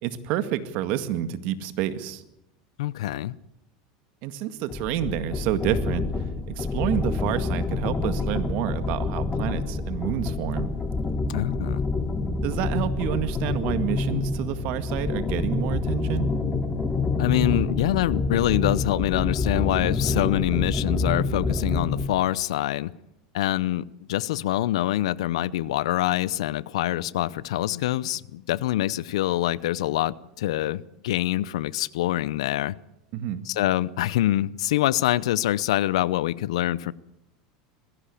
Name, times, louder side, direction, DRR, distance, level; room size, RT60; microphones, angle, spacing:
voice 1, 0.0-2.2 4.2-6.3 6.6-10.7 12.4-16.3 33.1-33.4, right 11 dB, 60° right, 1.9 m, -29 dB
voice 2, 2.8-3.4 11.3-11.9 17.2-22.9 23.3-23.8 24.1-32.7 33.5-36.9, left 14 dB, 85° left, 0.7 m, -25 dB
sound 1, 4.7-22.1, left 3 dB, 20° left, 1.8 m, -27 dB
20.5 x 16.0 x 8.4 m
supercardioid pair, 125°, 3 cm